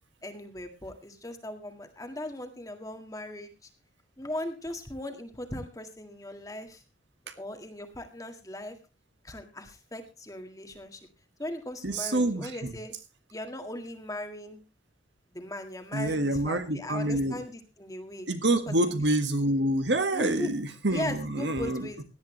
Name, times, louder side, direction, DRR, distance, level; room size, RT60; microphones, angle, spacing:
voice 1, 0.2-3.7 4.2-6.8 7.4-8.8 9.2-11.0 11.4-12.9 13.3-14.6 15.3-18.3 18.7-18.9 20.1-20.5 20.9-22.0, left 1 dB, 20° left, 5 dB, 1.8 m, -38 dB
voice 2, 11.8-12.7 15.9-17.4 18.3-21.9, right 1 dB, 70° right, 8 dB, 1.7 m, -27 dB
17.5 x 11.0 x 3.2 m, 0.29 s
head